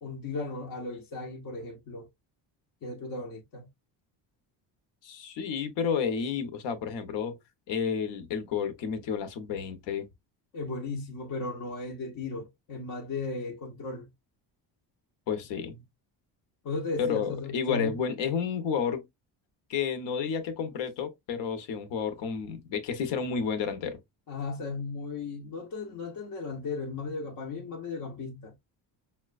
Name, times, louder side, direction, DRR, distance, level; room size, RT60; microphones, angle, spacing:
voice 1, 0.0-2.1 2.8-3.7 10.5-14.1 16.6-18.0 24.3-28.5, left 3 dB, 50° left, 0.8 m, -36 dB
voice 2, 5.0-7.4 7.7-10.1 15.3-15.8 17.0-19.0 19.7-24.0, left 6 dB, 75° left, 1.0 m, -31 dB
5.7 x 2.2 x 2.4 m
cardioid pair, 140°, 44 cm